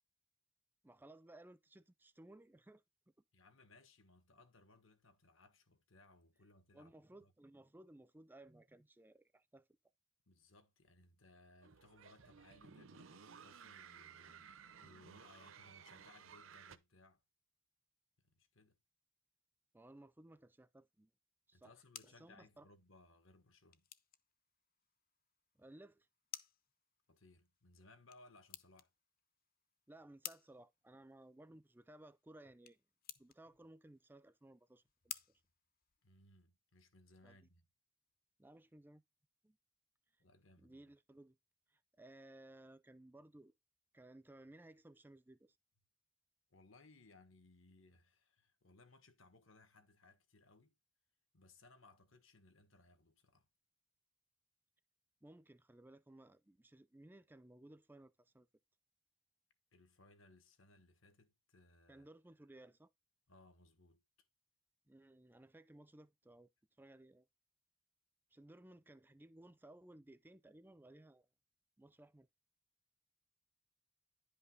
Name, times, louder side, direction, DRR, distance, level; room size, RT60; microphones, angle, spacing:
voice 1, 0.8-2.8 6.7-9.7 19.7-21.1 21.5-21.7 22.2-22.7 25.6-26.1 29.9-32.8 33.2-35.1 37.2-37.4 38.4-39.0 39.4-39.6 40.6-41.4 41.7-43.5 43.9-45.6 55.2-58.5 61.9-62.9 64.9-66.5 66.8-67.3 68.3-71.3 71.8-72.3, right 1 dB, 10° right, 0.4 m, -59 dB
voice 2, 3.3-7.0 7.2-7.3 10.3-17.2 18.2-18.8 21.5-23.8 27.1-28.9 36.0-37.6 40.2-40.9 46.5-50.7 51.3-53.5 59.7-62.1 63.3-64.0, left 2 dB, 80° left, 1.6 m, -65 dB
sound 1, 11.6-16.8, right 6 dB, 85° right, 0.8 m, -57 dB
sound 2, 21.5-36.4, left 11 dB, 50° left, 0.7 m, -56 dB
10.5 x 5.5 x 4.0 m
head